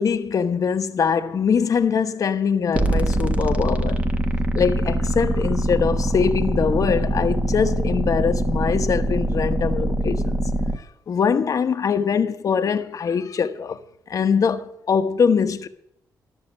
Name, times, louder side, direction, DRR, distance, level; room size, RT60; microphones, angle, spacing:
voice 1, 0.0-4.0 4.5-10.4 11.1-13.8 14.1-15.7, left 6 dB, 50° left, 1.2 m, -22 dB
sound 1, 2.7-10.8, right 1 dB, 20° right, 1.4 m, -23 dB
13.5 x 6.7 x 9.9 m
cardioid pair, 85°, 7 cm